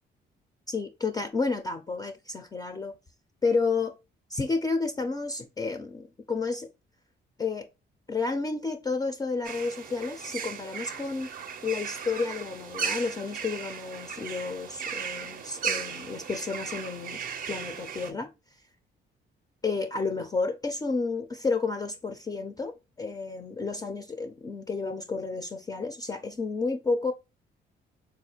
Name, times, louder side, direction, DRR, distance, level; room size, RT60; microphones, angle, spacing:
voice 1, 0.7-3.0 3.4-3.9 4.3-6.7 7.4-7.7 8.1-11.3 11.6-17.2 17.5-18.3 19.6-27.1, left 4 dB, 20° left, 0.3 m, -31 dB
sound 1, 9.4-18.1, right 7 dB, 45° right, 0.4 m, -36 dB
3.8 x 2.4 x 2.8 m
cardioid pair, 90°, 20 cm